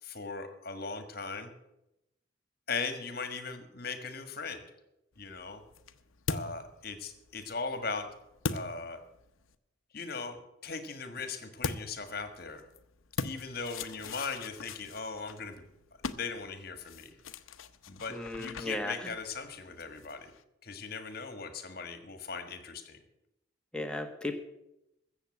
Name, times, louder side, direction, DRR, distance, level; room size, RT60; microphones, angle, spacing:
voice 1, 0.0-1.5 2.7-4.6 5.2-5.6 6.3-8.1 8.5-9.0 9.9-12.6 13.2-15.6 16.1-17.1 17.9-20.3 20.6-23.0, left 4 dB, 50° left, 8 dB, 1.6 m, -39 dB
sound 1, 5.1-9.5 11.6-20.4, left 4 dB, 85° left, 0.8 m, -42 dB
voice 2, 18.1-19.1 23.7-24.4, left 2 dB, 5° left, 4 dB, 1.3 m, -35 dB
15.0 x 7.3 x 8.6 m, 0.87 s
head